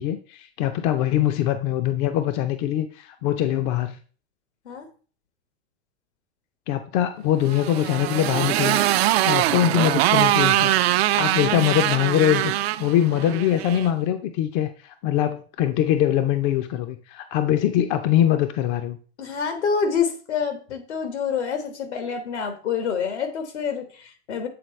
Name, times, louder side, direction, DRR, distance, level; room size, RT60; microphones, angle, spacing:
voice 1, 0.0-4.0 6.7-8.8 9.2-10.7 11.2-19.0, left 11 dB, 45° left, 8 dB, 0.6 m, -23 dB
Motorcycle, 7.4-13.9, right 14 dB, 65° right, 0.5 m, -22 dB
voice 2, 19.2-24.5, left 6 dB, 80° left, 8 dB, 1.5 m, -27 dB
7.9 x 3.9 x 3.2 m, 0.40 s
hypercardioid pair, 105°, 33 cm